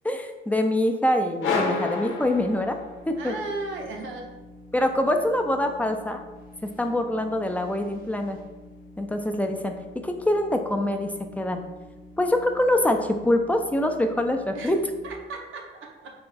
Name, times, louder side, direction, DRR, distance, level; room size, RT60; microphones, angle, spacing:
voice 1, 0.0-2.8 3.1-3.3 4.7-6.2 6.6-8.4 9.0-9.7 10.0-11.6 12.2-14.8, left 1 dB, 5° left, 5 dB, 0.3 m, -24 dB
sound 1, 1.4-3.2, left 3 dB, 80° left, 0.7 m, -28 dB
sound 2, 2.2-15.1, left 2 dB, 45° left, 0.7 m, -48 dB
voice 2, 3.2-4.3 14.5-14.7 15.0-16.1, right 3 dB, 75° right, 1 dB, 0.7 m, -35 dB
3.4 x 2.3 x 3.9 m, 1.1 s
cardioid pair, 90°, 20 cm